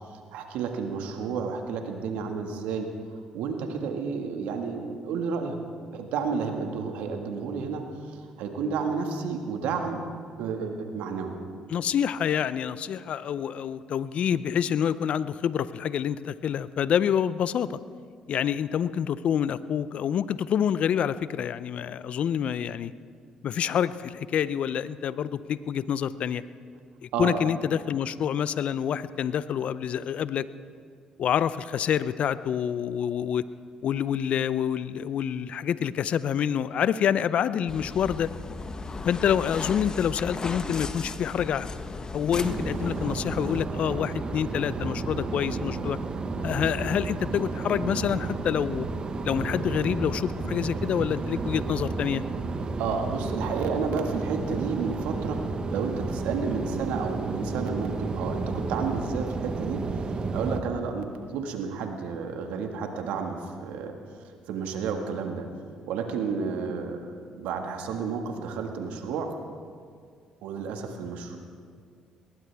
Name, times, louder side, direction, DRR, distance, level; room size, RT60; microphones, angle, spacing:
voice 1, 0.3-2.9 3.3-5.6 5.9-10.0 10.4-11.4 27.1-27.4 52.8-55.4 55.7-59.8 60.3-63.9 64.5-65.5 65.9-69.3 70.4-71.4, right 5 dB, 75° right, 4 dB, 1.7 m, -31 dB
voice 2, 11.7-17.8 18.3-22.9 23.4-26.4 27.0-30.5 31.2-33.4 33.8-38.3 39.0-41.7 42.1-46.0 46.4-48.9 49.2-52.2, left 8 dB, 60° left, 16 dB, 0.5 m, -27 dB
sound 1, 37.7-43.7, left 3 dB, 35° left, 1.1 m, -36 dB
sound 2, 42.3-60.6, right 3 dB, 40° right, 1.2 m, -32 dB
20.5 x 18.0 x 3.5 m, 2.1 s
hypercardioid pair, 60°, 2 cm